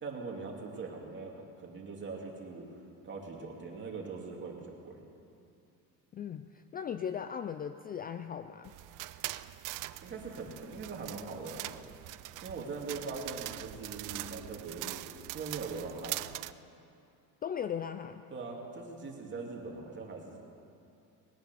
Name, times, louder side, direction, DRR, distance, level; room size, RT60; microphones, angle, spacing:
voice 1, 0.0-2.7 3.0-5.0 10.0-11.7 12.4-15.0 15.3-16.3 18.3-20.4, right 4 dB, 35° right, 0 dB, 2.5 m, -41 dB
voice 2, 6.1-8.7 17.4-18.2, left 8 dB, 25° left, 10 dB, 0.4 m, -38 dB
sound 1, 8.6-16.5, right 17 dB, 60° right, 0.5 m, -42 dB
20.0 x 9.4 x 6.9 m, 2.6 s
cardioid pair, 130°, 35 cm